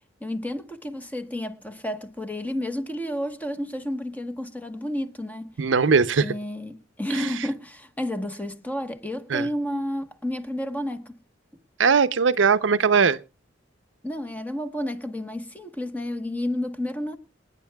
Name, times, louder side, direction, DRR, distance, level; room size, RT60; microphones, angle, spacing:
voice 1, 0.2-5.5 6.2-11.2 14.0-17.2, left 1 dB, 10° left, 1.1 m, -31 dB
voice 2, 5.6-6.3 9.3-9.5 11.8-13.2, right 5 dB, 70° right, 0.6 m, -19 dB
27.5 x 9.7 x 2.3 m
head